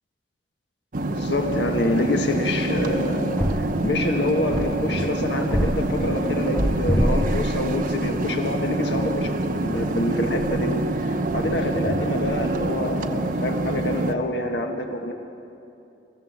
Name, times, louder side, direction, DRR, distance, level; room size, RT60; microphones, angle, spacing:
sound 1, 0.9-14.1, right 2 dB, 50° right, 0.9 m, -26 dB
voice 1, 1.1-15.1, left 1 dB, 75° left, 3 dB, 1.7 m, -27 dB
sound 2, 2.9-4.1 4.5-8.5 8.8-11.0 11.3-12.7, equal, ahead, 0.5 m, -28 dB
26.5 x 15.5 x 7.4 m, 2.7 s
head